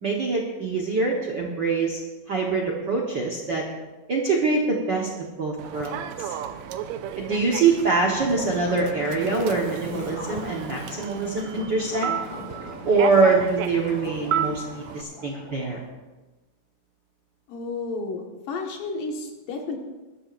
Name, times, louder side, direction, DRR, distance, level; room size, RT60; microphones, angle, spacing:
voice 1, 0.0-2.0 2.3-3.6 4.1-6.3 7.1-12.1 12.8-15.8, right 4 dB, 60° right, -2 dB, 1.2 m, -24 dB
Human voice / Subway metro underground, 5.6-15.0, right 9 dB, 80° right, 1.7 m, -33 dB
Gurgling / Liquid, 8.1-15.9, left 2 dB, 35° left, 4.2 m, -39 dB
voice 2, 17.5-19.8, left 3 dB, 80° left, 1 dB, 3.2 m, -32 dB
20.5 x 12.5 x 2.6 m, 1.2 s
omnidirectional pair, 3.8 m